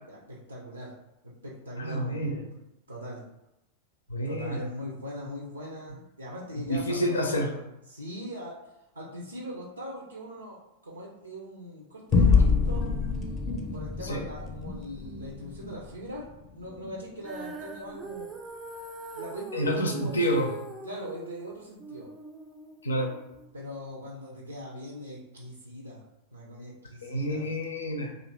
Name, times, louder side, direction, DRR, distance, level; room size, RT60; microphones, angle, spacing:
voice 1, 0.1-0.9 1.2-2.2 2.9-3.2 4.2-7.6 7.9-10.6 10.8-12.9 13.7-16.3 16.5-18.3 19.1-22.1 23.5-26.0 26.3-27.5, equal, 80° right, -3 dB, 0.5 m, -41 dB
voice 2, 1.8-2.4 4.1-4.6 6.7-7.5 14.0-14.2 19.5-20.5 22.8-23.1 27.0-28.1, equal, 75° left, 2 dB, 0.5 m, -28 dB
sound 1, 12.1-16.9, left 5 dB, 30° left, 0.5 m, -26 dB
Female singing, 17.2-23.5, right 3 dB, 20° right, 0.3 m, -42 dB
2.5 x 2.4 x 3.3 m, 0.88 s
figure-of-eight pair, 90°, 0 cm